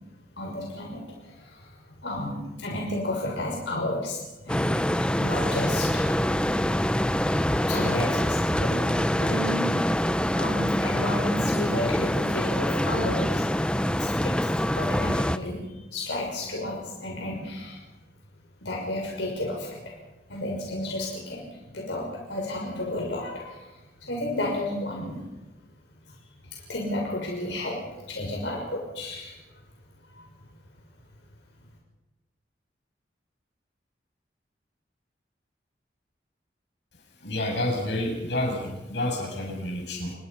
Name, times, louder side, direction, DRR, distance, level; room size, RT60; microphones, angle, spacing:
voice 1, 0.4-4.8 5.2-6.4 7.7-10.1 10.3-13.5 14.0-17.8 18.6-19.9 20.3-25.2 26.1-26.2 26.4-29.6 30.1-30.4, left 1 dB, 90° left, -1 dB, 6.2 m, -32 dB
sound 1, 4.5-15.4, equal, 5° left, 0.7 m, -25 dB
voice 2, 37.2-40.1, left 1 dB, 75° left, 1 dB, 7.7 m, -29 dB
29.5 x 21.0 x 5.8 m, 1.0 s
head